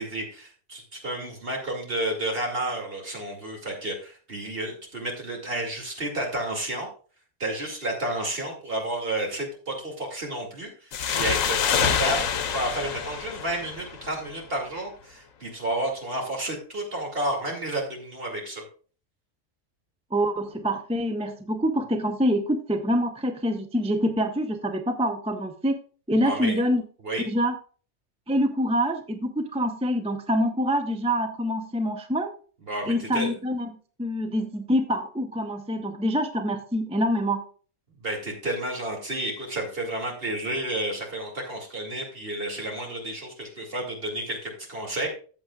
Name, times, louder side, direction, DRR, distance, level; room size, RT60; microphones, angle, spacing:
voice 1, 0.0-6.9 7.4-18.6 26.2-26.5 27.0-27.2 32.7-33.3 38.0-45.1, right 1 dB, 45° right, 1 dB, 2.6 m, -31 dB
sound 1, 10.9-14.3, left 7 dB, 90° left, 1.2 m, -26 dB
voice 2, 20.1-25.8 26.1-26.8 27.3-27.5 28.3-32.3 32.9-33.7 34.0-37.4, equal, 5° right, 6 dB, 0.5 m, -25 dB
14.0 x 7.5 x 2.3 m, 0.40 s
omnidirectional pair, 1.3 m